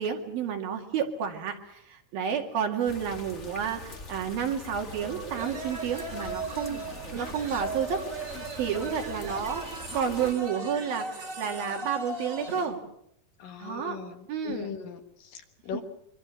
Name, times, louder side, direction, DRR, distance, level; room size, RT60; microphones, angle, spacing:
voice 1, 0.0-6.8 7.1-8.0 8.6-9.7 9.9-12.8 13.6-14.0 14.3-14.7, right 7 dB, 65° right, 4 dB, 3.9 m, -30 dB
sound 1, 2.9-10.3, left 3 dB, 40° left, 1.0 m, -44 dB
sound 2, 4.8-12.7, right 2 dB, 25° right, 2.0 m, -38 dB
voice 2, 13.4-15.8, left 7 dB, 65° left, 6 dB, 3.0 m, -39 dB
25.5 x 24.0 x 6.3 m, 0.74 s
omnidirectional pair, 4.7 m